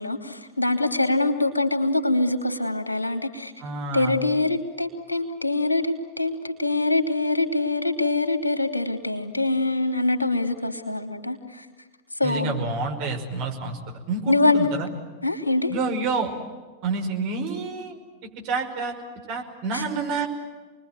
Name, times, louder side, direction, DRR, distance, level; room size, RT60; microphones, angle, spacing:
voice 1, 0.0-3.5 3.9-11.7 12.2-12.6 14.3-14.7 15.2-15.7 19.7-19.8, left 2 dB, 80° left, 6 dB, 2.8 m, -24 dB
voice 2, 3.6-4.2 12.2-13.8 14.1-14.9 15.7-16.3 16.8-18.0 18.4-18.9 19.3-20.3, right 4 dB, 45° right, 2 dB, 5.4 m, -28 dB
28.5 x 21.5 x 9.4 m, 1.4 s
figure-of-eight pair, 90°, 0 cm